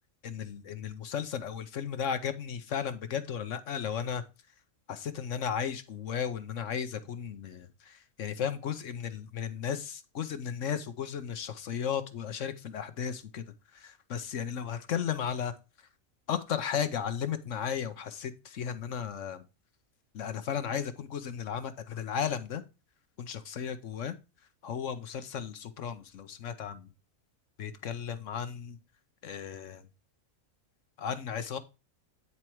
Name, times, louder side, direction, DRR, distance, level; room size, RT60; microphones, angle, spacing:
voice 1, 0.2-4.2 4.9-13.4 13.7-15.5 16.3-19.4 20.1-22.6 23.2-24.2 24.6-26.9 27.6-28.8 29.2-29.8 31.0-31.6, left 8 dB, 65° left, 1.1 m, -35 dB
9.7 x 4.4 x 4.5 m
omnidirectional pair, 1.5 m